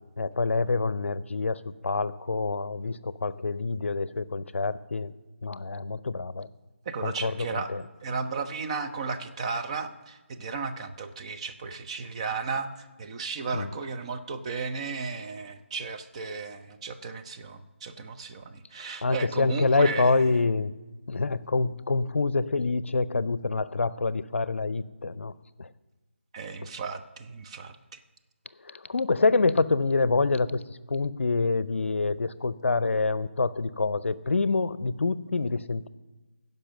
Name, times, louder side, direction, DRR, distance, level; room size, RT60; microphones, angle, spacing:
voice 1, 0.0-5.1 5.4-6.5 7.0-7.8 13.5-13.7 19.0-20.7 21.1-25.3 25.6-25.7 26.6-26.7 28.6-35.9, left 3 dB, 70° left, 17 dB, 0.5 m, -26 dB
voice 2, 6.8-7.7 8.0-20.1 26.3-28.0, right 5 dB, 30° right, 6 dB, 0.6 m, -34 dB
16.0 x 5.4 x 6.3 m, 1.2 s
figure-of-eight pair, 160°, 7 cm